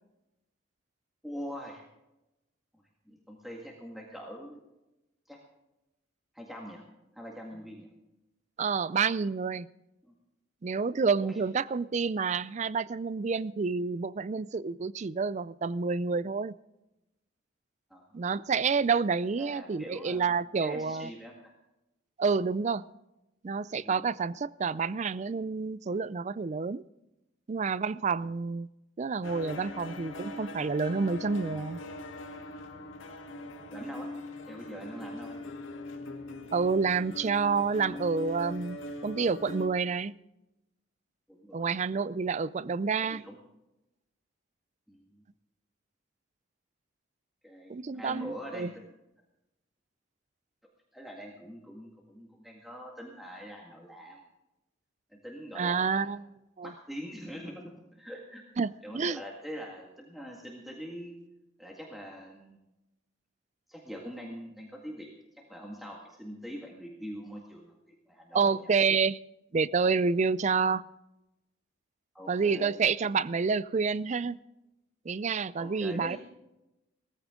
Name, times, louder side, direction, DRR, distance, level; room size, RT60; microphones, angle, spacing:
voice 1, 1.2-1.8 2.7-4.6 5.3-5.4 6.3-6.9 7.1-7.9 10.0-10.1 11.2-11.4 17.9-18.1 19.4-20.3 20.6-21.5 23.8-24.1 28.2-28.3 33.7-34.1 34.4-35.4 41.3-41.7 43.0-43.4 44.9-45.2 47.4-48.8 50.9-54.2 55.1-56.2 56.6-58.4 58.8-61.2 61.6-62.6 63.7-65.1 65.3-68.7 72.1-72.8 75.6-76.2, equal, ahead, 1.9 m, -43 dB
voice 2, 8.6-9.7 10.6-16.6 18.1-21.1 22.2-22.8 23.4-26.8 27.5-28.7 29.0-31.8 36.5-40.1 41.5-43.2 47.7-48.7 55.6-56.2 56.6-56.7 58.6-59.2 68.3-69.2 69.5-70.8 72.3-74.4 75.1-76.2, right 5 dB, 35° right, 0.4 m, -29 dB
sound 1, 29.2-39.7, left 1 dB, 75° left, 1.9 m, -41 dB
18.0 x 15.0 x 3.8 m
head